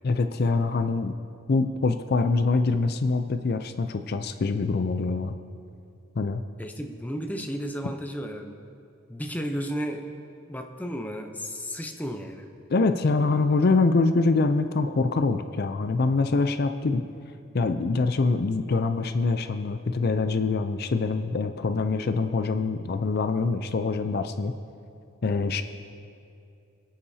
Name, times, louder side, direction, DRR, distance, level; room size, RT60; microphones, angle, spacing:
voice 1, 0.0-1.1 1.5-5.3 6.2-6.4 12.7-17.0 17.5-24.5 25.2-25.6, left 3 dB, 50° left, 8 dB, 0.5 m, -24 dB
voice 2, 6.6-8.5 9.1-10.0 10.5-12.5 25.3-25.5, equal, 10° left, 4 dB, 0.7 m, -33 dB
25.0 x 8.6 x 2.8 m, 2.5 s
head